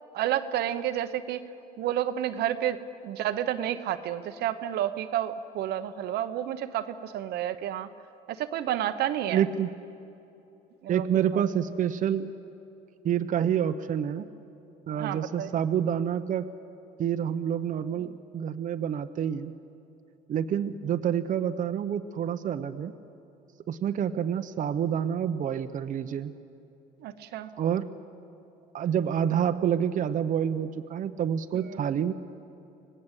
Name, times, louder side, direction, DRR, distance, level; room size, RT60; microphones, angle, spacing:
voice 1, 0.1-1.4 1.8-7.9 8.3-9.5 10.8-11.1 11.3-11.4 15.0-15.5 27.0-27.5 31.6-31.8, right 11 dB, 75° right, 9 dB, 1.0 m, -30 dB
voice 2, 9.3-9.7 10.9-12.3 13.0-14.3 14.9-16.4 17.0-19.5 20.3-22.9 23.7-26.3 27.6-27.9 28.7-32.1, right 9 dB, 50° right, 8 dB, 0.9 m, -28 dB
25.0 x 19.0 x 8.2 m, 2.9 s
cardioid pair, 110°, 17 cm